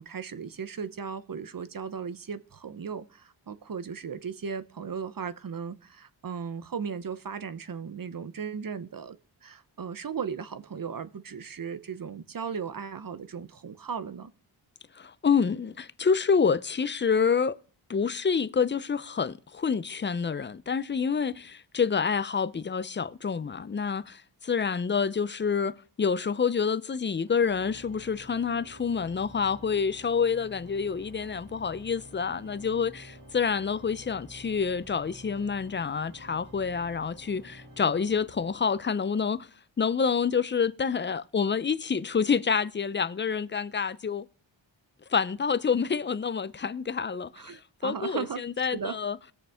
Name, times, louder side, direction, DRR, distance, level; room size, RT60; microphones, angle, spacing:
voice 1, 0.0-9.2 9.4-14.3 47.4-48.4 48.7-49.0, right 6 dB, 45° right, 0.8 m, -36 dB
voice 2, 15.0-17.6 17.9-39.5 39.8-44.3 45.1-49.2, left 6 dB, 25° left, 0.5 m, -28 dB
Organ, 27.2-39.0, equal, 85° right, 4.7 m, -50 dB
19.0 x 6.9 x 3.5 m
cardioid pair, 65°, 47 cm